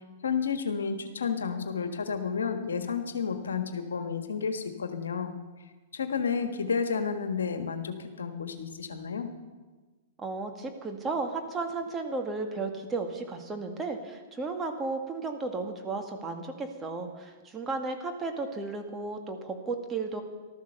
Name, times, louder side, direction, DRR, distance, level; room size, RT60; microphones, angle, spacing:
voice 1, 0.2-5.3 5.9-9.3, left 6 dB, 80° left, 8 dB, 1.4 m, -31 dB
voice 2, 10.2-20.2, right 3 dB, 20° right, 4 dB, 2.0 m, -34 dB
15.0 x 12.5 x 6.8 m, 1.3 s
hypercardioid pair, 115°, 0 cm